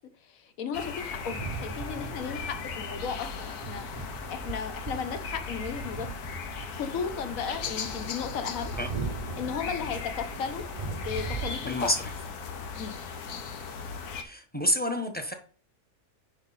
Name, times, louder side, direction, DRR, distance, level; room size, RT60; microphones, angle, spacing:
voice 1, 0.2-6.1 6.7-8.7 9.3-11.9 12.8-13.0, left 7 dB, 65° left, 1.4 m, -35 dB
sound 1, 0.7-14.2, left 5 dB, 80° left, 1.5 m, -38 dB
sound 2, 1.1-11.6, right 5 dB, 40° right, 0.4 m, -39 dB
voice 2, 11.6-12.1 14.2-15.3, equal, 5° left, 1.1 m, -29 dB
9.5 x 5.6 x 4.2 m
omnidirectional pair, 1.6 m